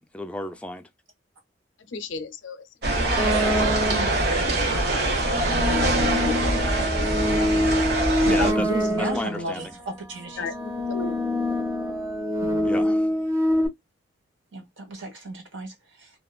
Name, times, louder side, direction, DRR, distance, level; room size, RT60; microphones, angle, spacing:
voice 1, 0.1-0.9 8.2-8.7 9.0-9.7 12.6-13.1, left 1 dB, 5° left, 0.3 m, -32 dB
voice 2, 1.8-5.1 5.7-6.6 7.1-7.9 10.4-11.1, left 4 dB, 90° left, 0.6 m, -37 dB
sound 1, 2.8-8.5, right 2 dB, 55° right, 0.9 m, -23 dB
sound 2, 3.2-4.2 5.0-9.5 10.3-13.7, left 1 dB, 15° right, 0.9 m, -25 dB
voice 3, 8.2-10.5 12.4-12.7 14.5-16.1, right 2 dB, 85° right, 1.5 m, -34 dB
2.9 x 2.3 x 2.3 m
head